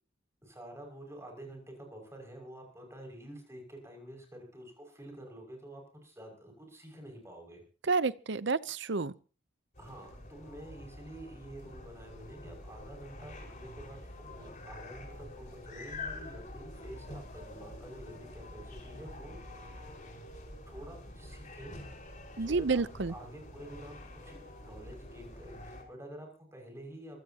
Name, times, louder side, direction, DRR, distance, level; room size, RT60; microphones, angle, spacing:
voice 1, 0.4-7.6 9.8-14.0 14.3-20.1 20.7-21.8 22.4-27.2, right 1 dB, 15° right, 6.0 m, -49 dB
voice 2, 7.8-9.1 22.4-23.1, right 4 dB, 60° right, 0.7 m, -30 dB
sound 1, 9.7-25.8, left 2 dB, 40° left, 5.2 m, -47 dB
25.0 x 16.5 x 2.9 m
head